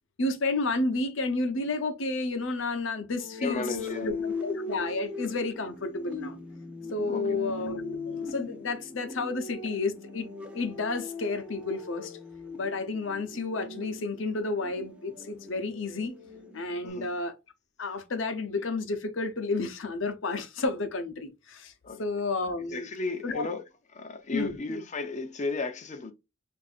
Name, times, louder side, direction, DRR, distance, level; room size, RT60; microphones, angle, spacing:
voice 1, 0.2-3.6 4.0-4.1 4.4-6.4 6.9-10.3 10.5-12.2 12.6-16.2 16.5-17.4 17.8-21.7 22.0-22.9 23.2-23.5 24.3-24.6, left 3 dB, 75° left, 0.8 m, -31 dB
sound 1, 3.2-16.9, left 3 dB, 5° right, 0.7 m, -40 dB
voice 2, 3.4-4.1 7.1-7.3 16.8-17.2 21.8-22.0 22.7-23.6 23.9-26.1, left 3 dB, 40° left, 0.6 m, -34 dB
4.5 x 2.6 x 2.4 m
head